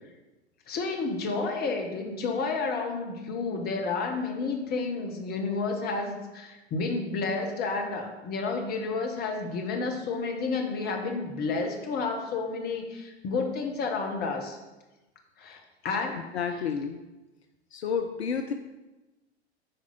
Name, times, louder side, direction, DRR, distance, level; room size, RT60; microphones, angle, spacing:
voice 1, 0.7-14.6 15.4-16.2, left 4 dB, 30° left, 3 dB, 1.3 m, -31 dB
voice 2, 16.3-17.0 17.7-18.5, left 6 dB, 65° left, 7 dB, 0.6 m, -30 dB
8.8 x 4.7 x 5.3 m, 1.1 s
figure-of-eight pair, 90°, 34 cm